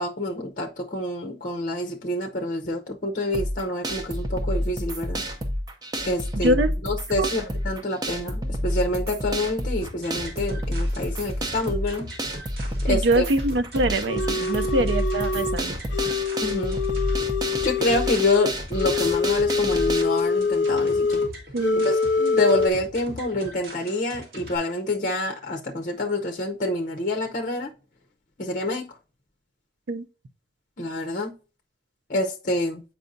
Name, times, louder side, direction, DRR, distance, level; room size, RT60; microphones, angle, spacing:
voice 1, 0.0-5.2 6.0-12.1 12.8-13.3 16.4-16.8 17.6-21.2 21.8-27.7 28.4-28.9 30.8-31.3 32.1-32.8, left 2 dB, 45° left, 0.7 m, -27 dB
sound 1, 3.3-20.0, equal, 20° right, 0.6 m, -29 dB
sound 2, 9.8-24.6, equal, 60° right, 1.9 m, -41 dB
voice 2, 12.9-15.8 21.5-21.9 29.9-30.0, right 1 dB, 80° right, 0.5 m, -24 dB
sound 3, 14.1-15.6 15.9-21.3 21.6-22.7, left 4 dB, 85° left, 0.5 m, -25 dB
7.8 x 4.7 x 2.6 m
head